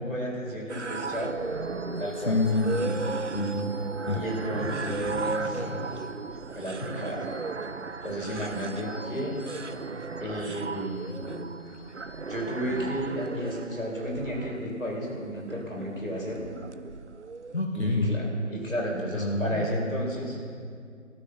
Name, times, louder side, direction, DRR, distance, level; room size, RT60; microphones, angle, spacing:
voice 1, 0.0-1.4 2.0-2.4 4.1-5.6 6.5-7.3 8.0-9.5 10.2-11.3 12.3-16.4 17.7-20.4, equal, 75° left, -2 dB, 5.0 m, -33 dB
sound 1, 0.7-17.6, right 4 dB, 60° right, 0.5 m, -36 dB
sound 2, 0.8-15.6, equal, 20° right, 3.9 m, -47 dB
voice 2, 2.2-3.7 4.1-4.2 4.5-4.7 5.2-5.8 17.5-18.2 19.1-19.8, left 2 dB, 55° left, 0 dB, 1.6 m, -28 dB
13.5 x 13.0 x 6.7 m, 2.2 s
figure-of-eight pair, 175°, 40 cm